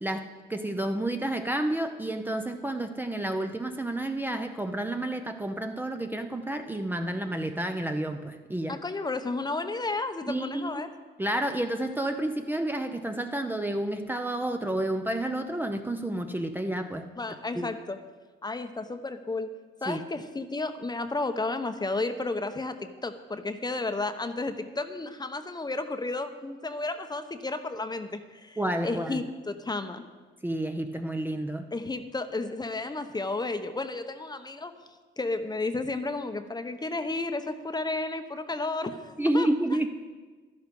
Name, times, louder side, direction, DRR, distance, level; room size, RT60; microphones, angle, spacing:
voice 1, 0.0-8.8 10.3-10.7 11.2-17.1 17.6-17.7 19.9-20.0 28.6-29.2 30.4-31.7 39.2-39.9, right 1 dB, 10° right, 5 dB, 0.7 m, -30 dB
voice 2, 8.7-10.9 17.2-18.0 18.4-19.5 19.8-28.6 28.8-30.0 31.7-34.7 35.2-39.5, left 3 dB, 20° left, 9 dB, 0.9 m, -32 dB
12.5 x 11.0 x 5.3 m, 1.4 s
cardioid pair, 90°, 20 cm